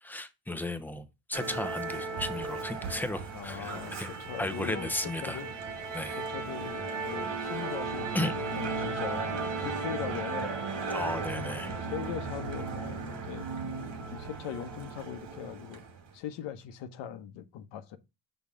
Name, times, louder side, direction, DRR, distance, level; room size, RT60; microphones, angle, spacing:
voice 1, 0.0-4.1 4.4-5.4 5.9-6.2 8.1-8.3 10.9-11.7, left 1 dB, 5° left, 0.8 m, -35 dB
Musical instrument, 1.3-16.0, right 4 dB, 80° right, 2.4 m, -36 dB
voice 2, 3.3-4.9 5.2-5.5 6.2-10.6 11.4-13.5 14.1-15.8 16.1-18.0, left 9 dB, 85° left, 1.0 m, -40 dB
5.7 x 4.0 x 4.9 m
cardioid pair, 90°, 42 cm